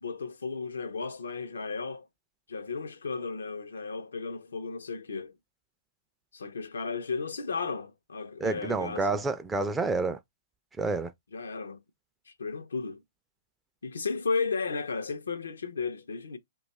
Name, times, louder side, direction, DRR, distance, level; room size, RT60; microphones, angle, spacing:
voice 1, 0.0-2.1 2.5-5.3 6.3-9.1 11.3-11.8 12.3-13.0 13.8-16.4, left 4 dB, 85° left, 0.6 m, -34 dB
voice 2, 8.4-10.2 10.8-11.1, right 3 dB, 10° right, 0.4 m, -29 dB
2.8 x 2.3 x 4.0 m
hypercardioid pair, 135°, 0 cm